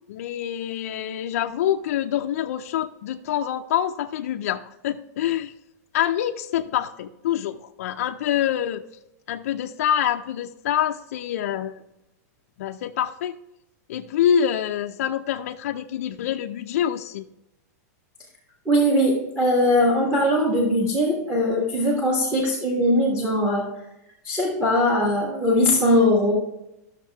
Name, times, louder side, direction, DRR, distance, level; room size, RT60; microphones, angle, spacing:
voice 1, 0.1-5.5 5.9-8.8 9.3-11.8 12.6-13.3 13.9-17.3, left 10 dB, 55° left, 3 dB, 0.5 m, -26 dB
voice 2, 18.6-23.7 24.2-26.3, left 1 dB, 10° right, -3 dB, 1.4 m, -20 dB
13.0 x 6.5 x 3.5 m, 0.90 s
supercardioid pair, 175°, 9 cm